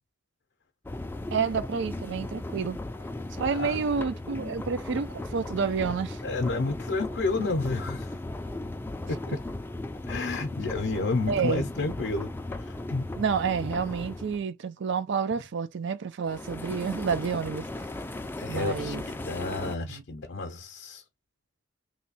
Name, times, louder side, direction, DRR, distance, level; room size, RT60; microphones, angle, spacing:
sound 1, 0.9-14.4 16.3-19.8, left 2 dB, 10° left, 0.3 m, -37 dB
voice 1, 1.3-2.8 3.3-6.2 11.3-11.7 13.2-17.7 18.5-19.0 19.9-20.0, right 6 dB, 65° right, 0.4 m, -29 dB
voice 2, 4.2-4.5 6.2-8.1 9.3-9.4 10.1-13.0 16.8-16.9 18.4-21.0, left 3 dB, 65° left, 0.6 m, -31 dB
3.1 x 2.2 x 4.0 m
head